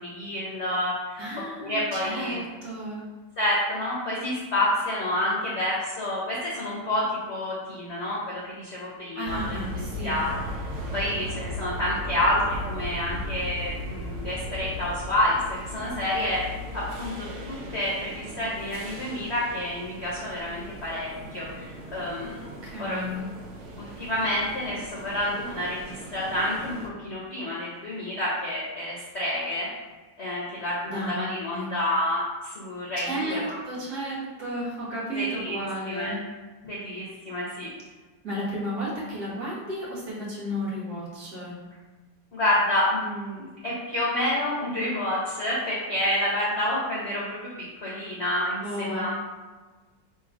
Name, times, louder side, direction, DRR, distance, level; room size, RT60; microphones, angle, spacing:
voice 1, 0.0-2.4 3.4-10.3 10.9-16.4 16.7-22.4 22.8-23.0 23.8-29.7 30.2-33.5 35.1-35.6 35.9-36.1 36.6-37.7 42.3-47.5 47.8-49.1, left 1 dB, 45° left, -6 dB, 1.0 m, -29 dB
voice 2, 1.2-3.0 9.2-10.2 22.4-23.2 30.8-31.1 31.5-31.7 33.0-36.2 38.2-41.6 48.6-49.1, equal, 55° right, -6 dB, 1.8 m, -33 dB
sound 1, 9.3-26.9, equal, 75° right, 0.6 m, -37 dB
3.5 x 3.1 x 4.8 m, 1.3 s
omnidirectional pair, 2.0 m